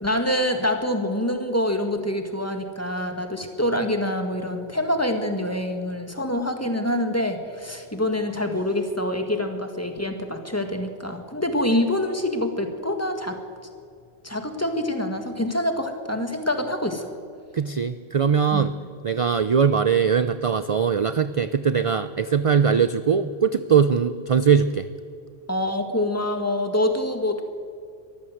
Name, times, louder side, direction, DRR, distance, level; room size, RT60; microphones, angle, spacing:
voice 1, 0.0-13.4 14.2-17.1 18.5-18.7 25.5-27.4, left 1 dB, 15° left, 5 dB, 1.8 m, -26 dB
voice 2, 17.5-18.7 19.0-24.9, right 6 dB, 40° right, 12 dB, 0.5 m, -21 dB
23.0 x 14.5 x 7.9 m, 2.2 s
omnidirectional pair, 1.1 m